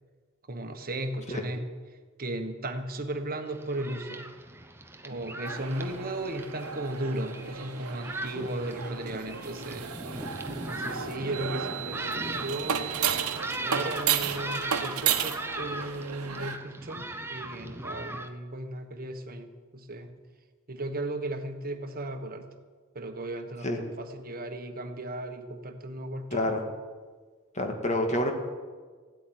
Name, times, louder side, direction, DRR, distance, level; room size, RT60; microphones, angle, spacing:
voice 1, 0.5-1.6 2.2-4.3 5.0-9.9 10.7-12.9 13.6-20.1 20.7-22.5 22.9-26.5, right 1 dB, 40° right, 6 dB, 1.4 m, -36 dB
Thunderstorm, 3.5-18.3, right 1 dB, 10° right, 0.8 m, -39 dB
sound 1, 5.4-16.6, right 8 dB, 75° right, 1.1 m, -33 dB
voice 2, 26.3-26.6 27.5-28.3, left 1 dB, 30° left, 4 dB, 2.0 m, -28 dB
15.5 x 8.3 x 10.0 m, 1.5 s
head